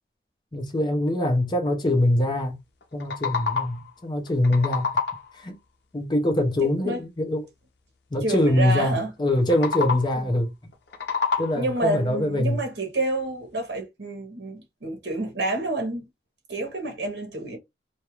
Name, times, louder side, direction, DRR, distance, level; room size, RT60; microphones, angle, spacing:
voice 1, 0.5-2.5 2.9-4.9 5.3-5.6 5.9-7.5 8.1-10.5 11.4-12.6, left 1 dB, 25° left, 0.5 m, -23 dB
sound 1, 2.8-3.9 4.3-5.4 9.4-10.3 10.7-11.8, left 5 dB, 75° left, 0.5 m, -28 dB
voice 2, 8.2-9.1 10.2-10.3 11.6-16.0 16.5-17.6, right 2 dB, 75° right, 0.8 m, -28 dB
2.3 x 2.1 x 3.0 m
head